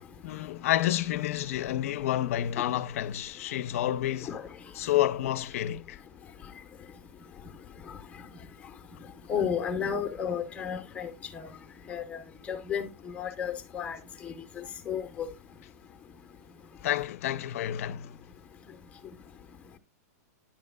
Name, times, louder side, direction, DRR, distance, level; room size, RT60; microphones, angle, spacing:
voice 1, 0.2-4.4 4.7-6.0 16.8-18.1, left 13 dB, 55° left, 0.6 m, -29 dB
voice 2, 9.3-11.5 11.9-12.2 12.5-14.0 14.2-15.3, left 7 dB, 15° left, 0.8 m, -33 dB
10.0 x 6.4 x 2.3 m
supercardioid pair, 160°, 9 cm